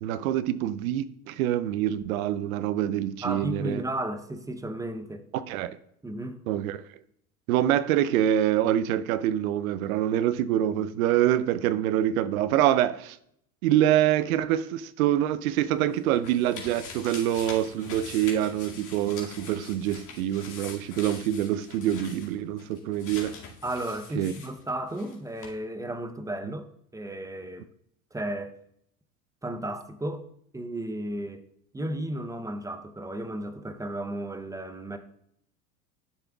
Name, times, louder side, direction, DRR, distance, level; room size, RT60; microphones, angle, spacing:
voice 1, 0.0-3.8 5.3-5.8 6.5-6.8 7.5-13.2 13.6-23.4 24.1-24.3, right 12 dB, 70° right, 0.7 m, -25 dB
voice 2, 3.2-5.3 6.0-6.4 23.6-26.7 26.9-27.7 28.1-28.5 29.4-30.3 30.5-31.4 31.7-35.0, right 1 dB, 10° right, 0.7 m, -34 dB
sound 1, 15.5-25.2 25.4-25.5, left 5 dB, 40° left, 2.3 m, -44 dB
12.0 x 6.8 x 2.3 m
hypercardioid pair, 80°, 45 cm